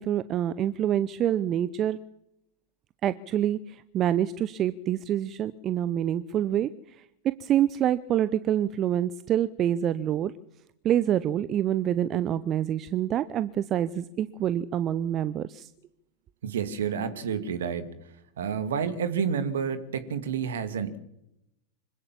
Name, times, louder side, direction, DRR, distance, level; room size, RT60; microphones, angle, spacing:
voice 1, 0.0-2.0 3.0-6.7 7.2-10.3 10.8-15.7, right 11 dB, 30° right, 15 dB, 0.7 m, -26 dB
voice 2, 16.4-17.9 18.4-21.0, right 7 dB, 60° right, 11 dB, 2.3 m, -29 dB
25.5 x 16.0 x 7.5 m, 0.83 s
figure-of-eight pair, 90°, 0 cm